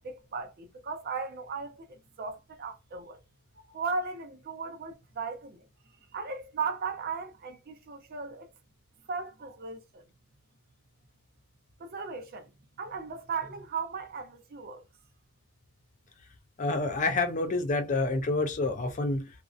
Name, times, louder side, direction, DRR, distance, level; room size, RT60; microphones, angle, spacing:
voice 1, 0.0-3.2 3.7-5.6 6.1-8.5 9.1-10.1 11.8-12.5 12.8-14.8, right 5 dB, 40° right, 0.5 m, -36 dB
voice 2, 16.6-19.3, left 3 dB, 35° left, 0.4 m, -28 dB
2.5 x 2.1 x 2.4 m
head